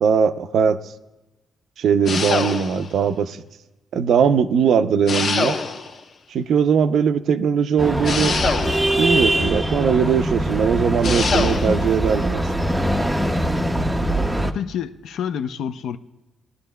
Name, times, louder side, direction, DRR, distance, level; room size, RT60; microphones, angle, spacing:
voice 1, 0.0-0.8 1.8-3.4 3.9-5.5 6.3-8.3 9.0-12.4, right 7 dB, 60° right, 11 dB, 0.5 m, -20 dB
sound 1, 2.0-3.0 5.1-6.0 8.0-9.1 11.0-11.8, left 4 dB, 50° left, 1.0 m, -24 dB
sound 2, 7.8-14.5, right 1 dB, 5° right, 0.5 m, -22 dB
voice 2, 14.4-16.0, left 8 dB, 75° left, 10 dB, 0.5 m, -28 dB
20.0 x 11.5 x 2.2 m, 1.0 s
cardioid pair, 175°, 0 cm